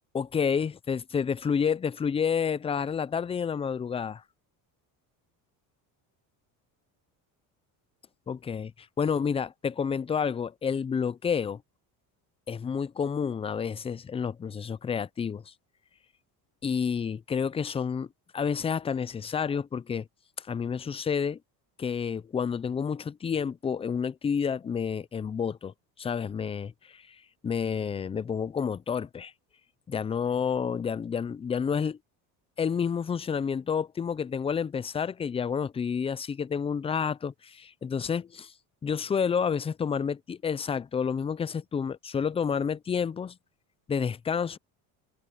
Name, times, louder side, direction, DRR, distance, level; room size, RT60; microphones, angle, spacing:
voice 1, 0.1-4.2 8.3-8.7 9.0-11.6 12.5-15.5 16.6-18.1 18.3-20.1 20.4-21.4 21.8-25.7 26.0-27.2 27.4-29.3 29.9-32.0 32.6-38.5 38.8-43.3 43.9-44.6, left 6 dB, 15° left, 0.3 m, -29 dB
cardioid pair, 125°, 40 cm